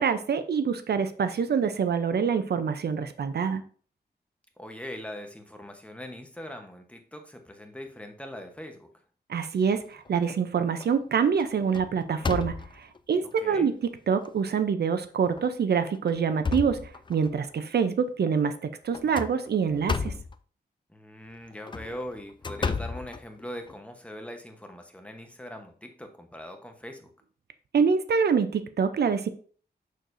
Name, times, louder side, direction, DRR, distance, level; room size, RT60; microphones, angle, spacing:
voice 1, 0.0-3.6 9.3-13.7 14.1-18.5 18.8-20.1 27.7-29.3, right 6 dB, 70° right, 11 dB, 0.5 m, -26 dB
voice 2, 4.6-8.9 13.2-13.7 20.9-27.1, left 1 dB, 5° left, 4 dB, 1.0 m, -41 dB
sound 1, 9.8-10.4 10.8-11.1 11.4-13.0 13.7-13.8 14.2-14.3 15.2-15.5 15.9-17.4 18.9-20.4 21.5-23.8, left 4 dB, 30° left, 0.4 m, -33 dB
6.5 x 6.4 x 2.6 m, 0.43 s
wide cardioid pair, 110°, 17 cm